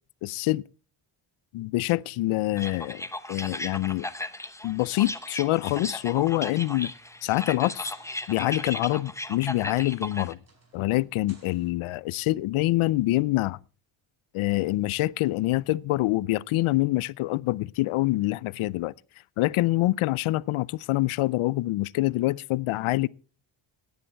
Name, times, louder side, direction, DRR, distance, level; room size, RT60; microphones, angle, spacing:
voice 1, 0.2-0.6 1.5-4.1 4.6-6.9 7.2-7.9 8.3-10.4 10.7-13.6 14.3-18.9 19.4-23.1, left 18 dB, 80° left, 0.6 m, -26 dB
sound 1, 2.6-10.3, left 1 dB, 5° left, 0.9 m, -36 dB
sound 2, 6.6-11.7, right 3 dB, 30° right, 5.1 m, -59 dB
16.5 x 10.5 x 4.5 m
cardioid pair, 100°, 49 cm